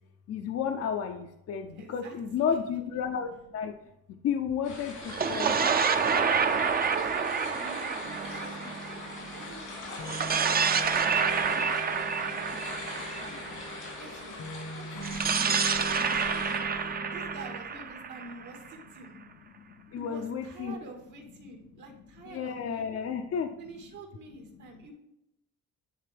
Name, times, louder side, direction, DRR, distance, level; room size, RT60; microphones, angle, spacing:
voice 1, 0.3-3.8 4.2-5.7 9.2-9.3 16.0-16.6 19.7-20.7 22.3-23.6, left 7 dB, 55° left, 6 dB, 0.5 m, -32 dB
voice 2, 1.8-2.8 5.9-6.4 6.9-13.6 14.0-16.2 16.5-19.2 20.0-23.1 23.6-24.9, right 3 dB, 80° right, 2 dB, 1.8 m, -48 dB
sound 1, 4.6-16.6, left 3 dB, 85° left, 2.7 m, -42 dB
sound 2, 5.0-9.4 10.0-14.0 15.0-18.8, right 6 dB, 30° right, 0.5 m, -28 dB
sound 3, 8.0-17.6, right 1 dB, 70° left, 1.1 m, -42 dB
10.0 x 3.8 x 3.4 m, 0.86 s
cardioid pair, 90°, 30 cm